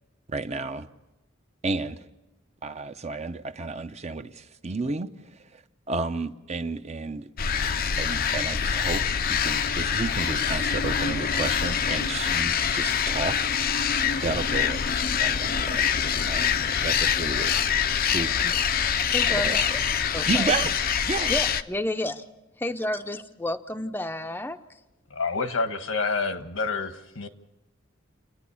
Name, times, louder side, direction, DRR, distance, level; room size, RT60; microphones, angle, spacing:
voice 1, 0.3-0.9 1.6-2.0 2.6-5.6 5.9-7.3 8.0-13.7 14.2-15.9 16.2-17.5 18.1-18.3 19.3-19.6 20.3-20.7 21.1-21.3, right 3 dB, 35° right, 0.8 m, -32 dB
sound 1, 7.4-21.6, left 7 dB, 45° left, 0.6 m, -25 dB
voice 2, 19.0-19.8 20.1-20.5 21.3-22.2 22.6-24.6, left 1 dB, 10° left, 0.6 m, -31 dB
voice 3, 25.1-27.3, left 4 dB, 80° left, 1.5 m, -28 dB
29.5 x 10.5 x 8.5 m
head